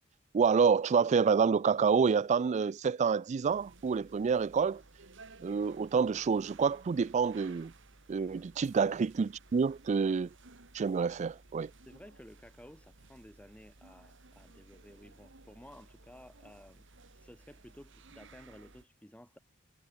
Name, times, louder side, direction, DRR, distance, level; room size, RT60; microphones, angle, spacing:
voice 1, 0.3-4.8 5.4-7.7 8.1-10.3 10.7-11.7, right 5 dB, 35° right, 0.3 m, -28 dB
sound 1, 3.4-18.8, right 3 dB, 65° right, 2.2 m, -57 dB
voice 2, 11.9-16.9 17.1-19.4, left 1 dB, 5° left, 2.0 m, -54 dB
head